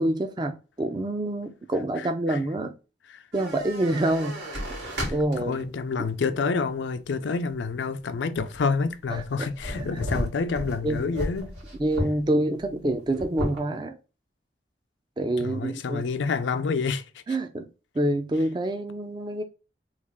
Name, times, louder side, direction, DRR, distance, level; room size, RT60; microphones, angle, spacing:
voice 1, 0.0-2.7 3.3-4.6 5.1-5.6 6.0-6.1 9.1-9.5 9.8-10.0 10.8-11.1 11.8-14.0 15.2-16.0 17.3-17.7 17.9-19.4, right 1 dB, 25° right, 0.4 m, -27 dB
voice 2, 2.0-2.4 3.1-3.2 5.5-11.5 15.4-17.2, left 4 dB, 85° left, 0.4 m, -28 dB
sound 1, 3.3-5.7 6.3-6.4 8.4-8.7 9.1-12.2 12.6-12.7 12.9-13.6, equal, 90° right, 1.8 m, -33 dB
3.2 x 2.4 x 3.6 m
head